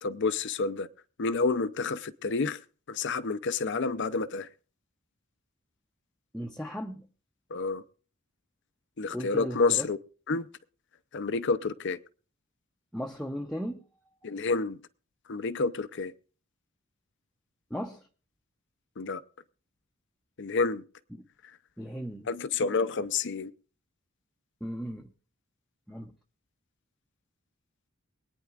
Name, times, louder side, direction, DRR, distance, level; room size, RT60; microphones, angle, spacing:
voice 1, 0.0-0.9 1.2-2.6 2.9-4.5 7.5-7.8 9.0-10.0 10.3-10.5 11.1-12.0 14.2-14.8 15.3-16.1 19.0-19.2 20.4-20.8 22.3-23.5, left 4 dB, 60° left, 0.6 m, -29 dB
voice 2, 6.3-7.1 9.1-9.9 12.9-13.9 17.7-18.0 21.1-21.2 21.8-22.3 24.6-25.1 25.9-26.1, equal, 5° left, 0.7 m, -36 dB
24.0 x 9.4 x 2.4 m
head